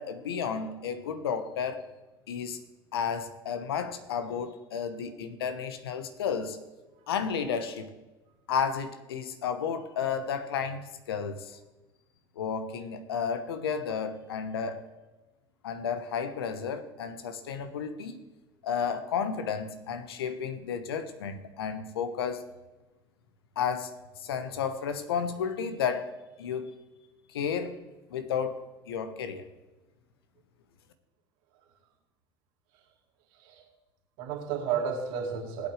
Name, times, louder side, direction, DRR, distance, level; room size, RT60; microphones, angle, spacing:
voice 1, 0.0-1.8 2.3-2.6 2.9-6.6 7.1-7.9 8.5-11.6 12.4-14.9 15.6-18.2 18.6-22.5 23.6-23.9 24.2-26.1 26.4-26.7 27.3-27.8 28.1-29.5, left 7 dB, 80° left, 9 dB, 1.0 m, -32 dB
voice 2, 33.3-33.6 34.2-35.7, right 7 dB, 65° right, 0 dB, 2.4 m, -32 dB
18.5 x 8.4 x 3.3 m, 1.1 s
hypercardioid pair, 65°, 13 cm